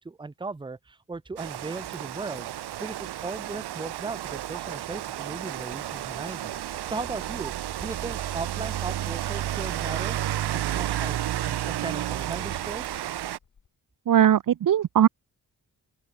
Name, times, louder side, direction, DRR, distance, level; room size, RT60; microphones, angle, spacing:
voice 1, 0.0-2.5 2.8-7.5 7.8-10.2 10.5-13.0, right 3 dB, 10° right, 0.8 m, -37 dB
Rain, 1.4-13.4, right 12 dB, 90° right, 0.7 m, -32 dB
sound 1, 7.9-8.0 9.9-10.0 10.6-11.7 12.5-13.8, left 6 dB, 50° left, 4.8 m, -55 dB
voice 2, 14.1-15.1, right 10 dB, 55° right, 0.6 m, -19 dB
open air
wide cardioid pair, 130°, 38 cm